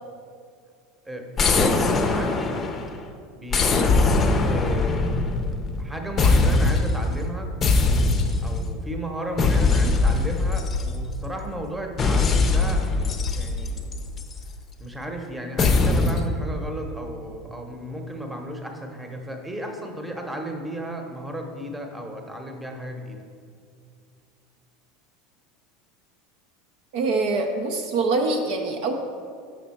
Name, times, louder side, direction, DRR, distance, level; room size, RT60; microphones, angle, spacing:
voice 1, 1.0-2.6 3.3-5.1 5.8-7.5 8.4-12.8 13.3-14.0 14.8-23.2, right 1 dB, 10° right, 3 dB, 1.0 m, -34 dB
sound 1, 1.4-3.0 3.5-5.9 6.2-7.0 7.6-8.6 9.4-11.3 12.0-14.4 15.6-16.3, left 3 dB, 30° left, 0.6 m, -21 dB
voice 2, 26.9-28.9, right 3 dB, 55° right, 2 dB, 0.6 m, -24 dB
6.4 x 5.9 x 4.3 m, 2.3 s
figure-of-eight pair, 75°, 0 cm